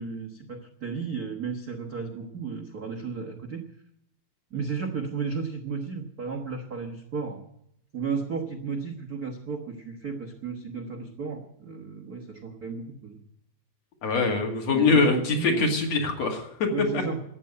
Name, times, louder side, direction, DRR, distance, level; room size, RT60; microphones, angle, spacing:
voice 1, 0.0-3.7 4.5-7.4 7.9-13.2 14.7-15.7 16.7-17.2, right 5 dB, 65° right, 1 dB, 0.9 m, -34 dB
voice 2, 14.0-16.7 16.9-17.0, left 4 dB, 55° left, 2 dB, 3.2 m, -23 dB
13.5 x 8.6 x 9.5 m, 0.77 s
omnidirectional pair, 3.9 m